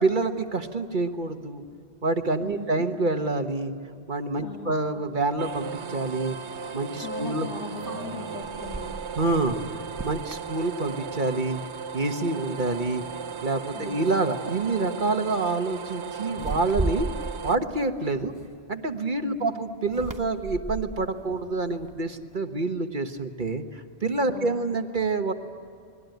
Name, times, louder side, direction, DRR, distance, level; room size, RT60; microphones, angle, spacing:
voice 1, 0.0-1.6 2.0-3.7 4.1-6.4 6.7-7.5 9.2-11.6 11.9-13.0 13.4-17.1 17.4-18.3 18.7-25.3, right 3 dB, 45° right, 6 dB, 1.5 m, -27 dB
voice 2, 2.4-2.9 4.4-4.7 6.7-8.9 13.7-14.0 19.2-19.5 24.3-24.6, left 3 dB, 75° left, 0 dB, 2.9 m, -39 dB
sound 1, 5.4-17.5, right 6 dB, 80° right, 1.2 m, -37 dB
sound 2, 5.5-5.6 7.8-11.4 11.8-12.1 12.5-13.2 14.1-14.3 14.6-14.9 16.3-18.9 19.8-22.3, right 2 dB, 20° right, 0.7 m, -37 dB
sound 3, 7.5-12.2, equal, 20° left, 4.2 m, -50 dB
29.5 x 21.0 x 9.3 m, 2.4 s
omnidirectional pair, 1.2 m